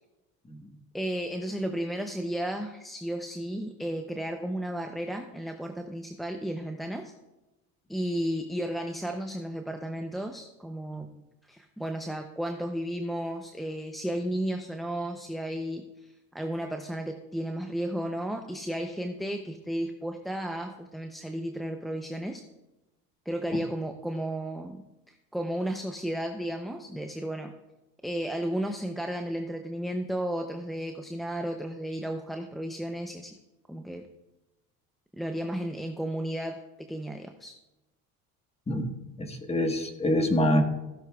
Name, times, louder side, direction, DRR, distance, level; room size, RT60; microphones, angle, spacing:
voice 1, 0.9-7.1 7.9-11.1 11.5-22.4 23.3-27.5 28.0-33.3 33.7-34.0 35.2-36.6 36.9-37.6, right 1 dB, ahead, 4 dB, 0.6 m, -33 dB
voice 2, 39.2-40.6, left 1 dB, 15° left, 5 dB, 1.4 m, -25 dB
15.5 x 9.9 x 2.4 m, 1.0 s
supercardioid pair, 100°, 39 cm